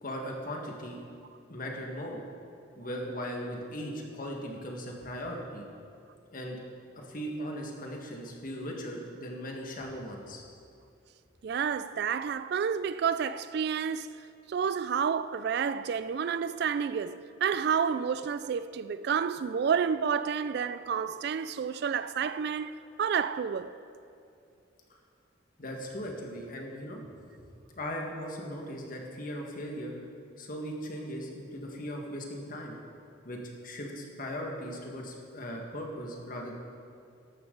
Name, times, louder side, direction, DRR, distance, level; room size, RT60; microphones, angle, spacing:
voice 1, 0.0-1.0 1.5-2.2 2.8-5.6 6.3-6.6 7.1-10.4 25.6-27.0 27.7-29.9 30.4-32.8 33.2-36.5, equal, 45° left, 1.7 m, -38 dB
voice 2, 11.4-14.1 14.5-22.7 23.0-23.7, right 7 dB, 55° right, 0.3 m, -30 dB
14.0 x 12.0 x 3.9 m
head